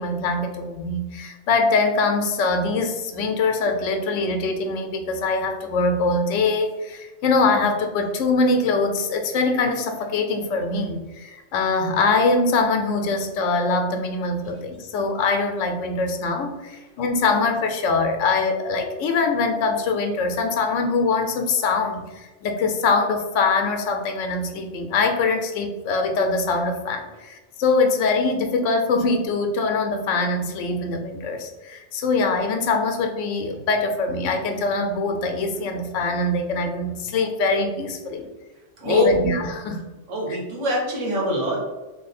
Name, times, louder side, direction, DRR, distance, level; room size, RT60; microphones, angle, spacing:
voice 1, 0.0-38.3 38.8-39.8, left 3 dB, 90° left, 5 dB, 0.9 m, -23 dB
voice 2, 38.8-39.2 40.1-41.6, right 1 dB, 85° right, -2 dB, 1.3 m, -24 dB
3.1 x 2.1 x 4.0 m, 1.1 s
omnidirectional pair, 1.2 m